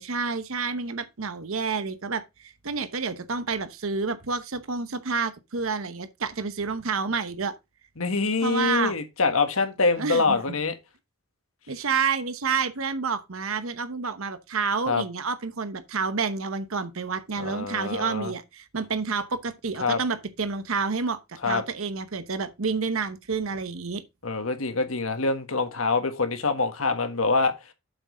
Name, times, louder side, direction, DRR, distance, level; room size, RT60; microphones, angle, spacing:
voice 1, 0.0-7.5 8.4-8.9 10.0-10.4 11.7-24.0, right 5 dB, 75° right, 0.9 m, -29 dB
voice 2, 8.0-10.7 14.9-15.0 17.4-18.3 19.8-20.0 21.4-21.6 24.2-27.5, left 3 dB, 80° left, 1.6 m, -25 dB
8.0 x 6.3 x 3.9 m
head